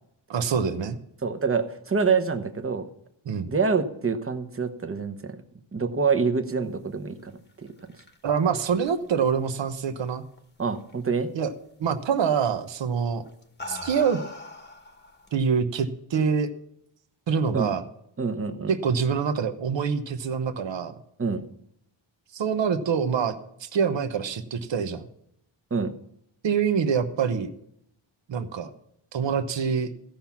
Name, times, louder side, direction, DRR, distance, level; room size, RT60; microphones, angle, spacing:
voice 1, 0.3-1.0 3.3-3.5 8.2-10.2 11.3-11.5 11.8-13.2 13.7-14.2 15.3-16.5 17.3-17.8 18.7-21.0 22.3-23.3 23.6-25.1 26.4-27.5 28.3-28.7 29.1-29.9, right 6 dB, 60° right, 8 dB, 1.1 m, -25 dB
voice 2, 1.2-2.8 3.5-5.4 5.7-7.3 10.6-11.3 17.5-17.7 18.2-18.7 21.2-21.4 25.7-25.9, right 5 dB, 25° right, 8 dB, 1.0 m, -26 dB
sound 1, 7.5-10.4 10.7-11.2 12.4-12.6 13.3-15.4, left 2 dB, 20° left, 1.2 m, -42 dB
16.0 x 5.9 x 7.2 m, 0.73 s
wide cardioid pair, 165°, 49 cm